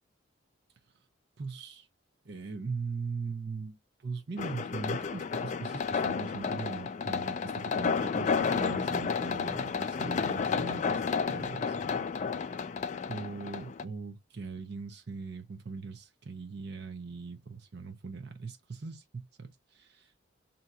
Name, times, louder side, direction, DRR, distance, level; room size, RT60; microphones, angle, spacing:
voice 1, 1.4-1.9 2.2-12.5 13.1-20.3, right 4 dB, 55° right, 0.6 m, -40 dB
sound 1, 4.4-13.8, left 5 dB, 40° left, 0.3 m, -31 dB
2.8 x 2.3 x 4.0 m
head